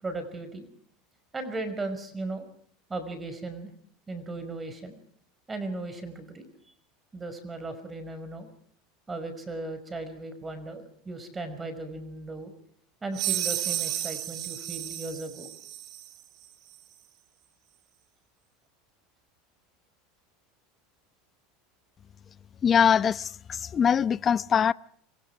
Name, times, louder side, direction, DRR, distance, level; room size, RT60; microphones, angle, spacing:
voice 1, 0.0-0.7 1.3-2.5 2.9-3.7 4.1-5.0 5.5-6.5 7.1-8.5 9.1-12.5 13.0-15.5, right 2 dB, 15° right, 5.4 m, -36 dB
sound 1, 13.1-16.1, right 12 dB, 45° right, 2.6 m, -32 dB
voice 2, 22.6-24.7, left 7 dB, 30° left, 0.8 m, -23 dB
27.0 x 25.0 x 4.8 m
supercardioid pair, 120°, 0 cm